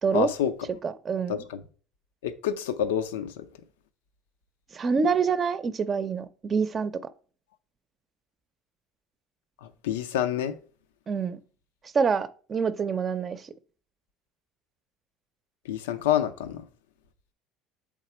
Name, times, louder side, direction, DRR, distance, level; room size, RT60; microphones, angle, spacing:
voice 1, 0.1-0.5 1.3-1.6 2.2-3.4 9.8-10.5 15.7-16.6, left 10 dB, 85° left, 0.5 m, -27 dB
voice 2, 0.8-1.4 4.7-6.9 11.1-11.4 11.9-13.4, right 5 dB, 35° right, 0.6 m, -26 dB
7.3 x 3.7 x 4.3 m
hypercardioid pair, 80°, 0 cm